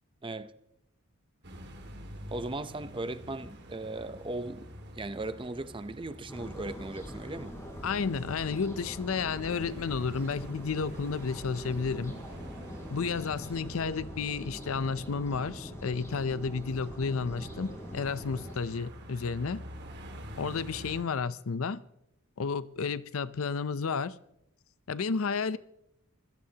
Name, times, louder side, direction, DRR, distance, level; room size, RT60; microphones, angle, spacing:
voice 1, 0.2-0.5 2.3-4.7 4.9-7.5, right 2 dB, 25° right, 0.7 m, -37 dB
sound 1, 1.4-21.0, equal, 50° right, 2.1 m, -48 dB
sound 2, 6.3-18.6, equal, 15° left, 4.0 m, -43 dB
voice 2, 7.8-12.2 12.9-19.6 20.4-21.8 22.4-24.2 24.9-25.6, left 5 dB, 70° left, 0.6 m, -32 dB
25.0 x 16.5 x 2.9 m
head